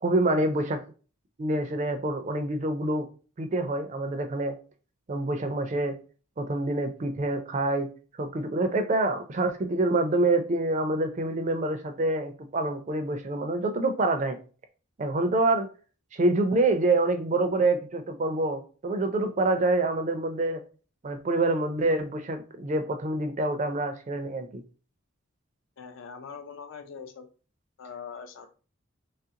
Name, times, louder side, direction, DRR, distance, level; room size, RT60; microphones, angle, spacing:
voice 1, 0.0-0.8 1.4-3.1 3.4-4.6 5.1-6.0 6.4-7.9 8.2-14.4 15.0-15.7 16.1-20.6 21.0-24.6, right 2 dB, 35° right, 0.4 m, -26 dB
voice 2, 25.8-27.3 27.8-28.5, left 6 dB, 70° left, 0.5 m, -42 dB
3.1 x 2.4 x 2.8 m
head